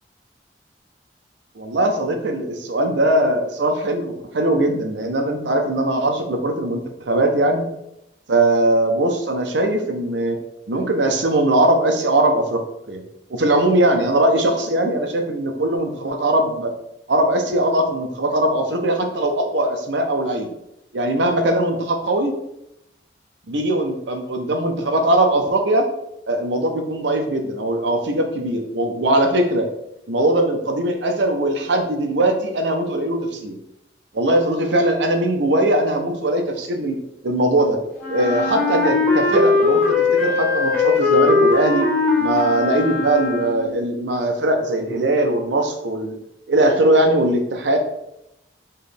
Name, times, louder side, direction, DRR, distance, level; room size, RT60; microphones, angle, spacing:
voice 1, 1.6-6.8 7.1-7.6 8.3-10.4 10.7-13.0 13.3-16.7 17.1-20.5 20.9-22.3 23.5-25.9 26.3-29.7 30.1-33.6 34.1-37.8 38.1-41.9 42.2-46.1 46.5-47.8, right 1 dB, 85° right, 4 dB, 0.7 m, -20 dB
Wind instrument woodwind instrument, 38.0-43.8, left 3 dB, 5° left, 1.1 m, -19 dB
4.5 x 3.1 x 3.3 m, 0.84 s
head